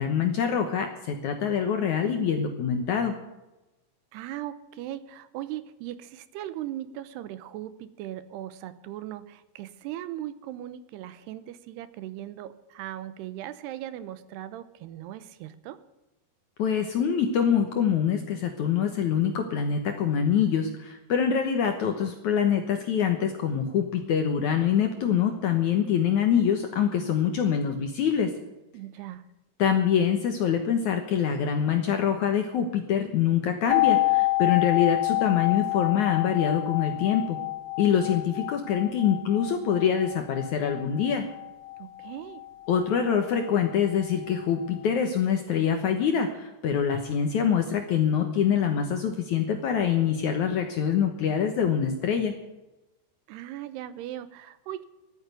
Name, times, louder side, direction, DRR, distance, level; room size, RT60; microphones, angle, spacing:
voice 1, 0.0-3.1 16.6-28.3 29.6-37.4 37.8-41.2 42.7-52.3, left 8 dB, 70° left, 5 dB, 1.9 m, -25 dB
voice 2, 4.1-15.8 28.7-29.2 41.8-42.4 53.3-54.9, right 13 dB, 80° right, 14 dB, 2.8 m, -38 dB
sound 1, 33.7-43.4 43.7-43.8, left 20 dB, 85° left, 2.8 m, -28 dB
12.5 x 9.5 x 9.4 m, 0.98 s
omnidirectional pair, 4.7 m